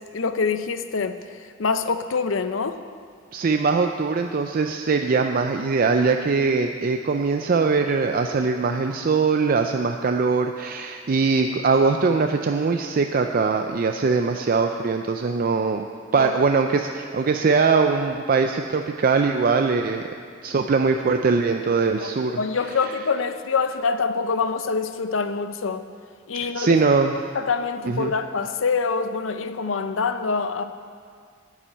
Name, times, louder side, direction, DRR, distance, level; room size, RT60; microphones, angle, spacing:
voice 1, 0.1-1.2 1.6-2.8 16.2-16.3 22.0-25.8 26.3-26.8 27.3-30.6, left 5 dB, 80° left, 10 dB, 0.6 m, -25 dB
voice 2, 3.3-15.9 16.1-20.0 20.4-22.4 26.4-27.1 27.9-28.1, right 4 dB, 45° right, 5 dB, 0.4 m, -21 dB
9.8 x 7.3 x 8.7 m, 2.2 s
head